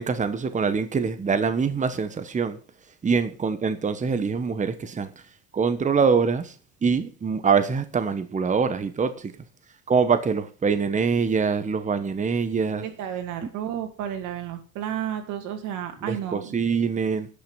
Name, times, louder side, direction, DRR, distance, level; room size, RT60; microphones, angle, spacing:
voice 1, 0.0-2.6 3.0-5.1 5.5-6.5 6.8-9.3 9.9-12.8 16.0-17.3, right 5 dB, 25° right, 1.2 m, -24 dB
voice 2, 12.8-16.5, right 10 dB, 75° right, 2.4 m, -32 dB
10.0 x 5.9 x 7.3 m
cardioid pair, 105°, 31 cm